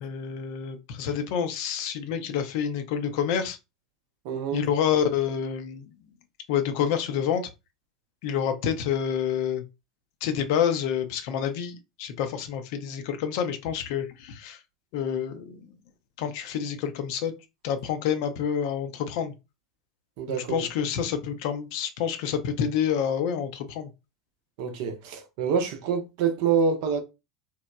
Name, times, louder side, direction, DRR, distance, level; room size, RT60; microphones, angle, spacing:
voice 1, 0.0-3.6 4.5-5.9 6.5-7.4 8.2-9.6 10.2-14.6 14.9-15.6 16.2-17.3 17.6-19.3 20.3-23.9, left 8 dB, 60° left, 0.4 m, -28 dB
voice 2, 4.2-4.6 20.2-20.7 24.6-27.0, right 6 dB, 60° right, 0.6 m, -26 dB
2.9 x 2.0 x 2.2 m
figure-of-eight pair, 80°, 2 cm